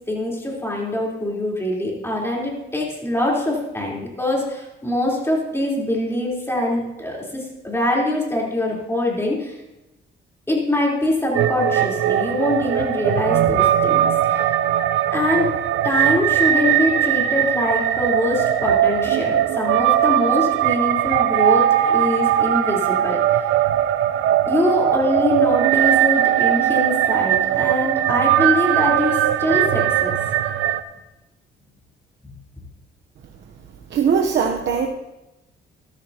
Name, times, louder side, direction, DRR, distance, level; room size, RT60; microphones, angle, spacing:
voice 1, 0.0-9.6 10.5-14.5 15.1-15.5 15.8-23.2 24.5-30.2, left 1 dB, 10° left, -3 dB, 4.1 m, -23 dB
sound 1, 11.3-30.8, right 11 dB, 80° right, 0.6 m, -19 dB
voice 2, 33.9-34.9, right 6 dB, 65° right, 2 dB, 1.0 m, -20 dB
13.5 x 13.0 x 3.0 m, 0.98 s
cardioid pair, 90°, 20 cm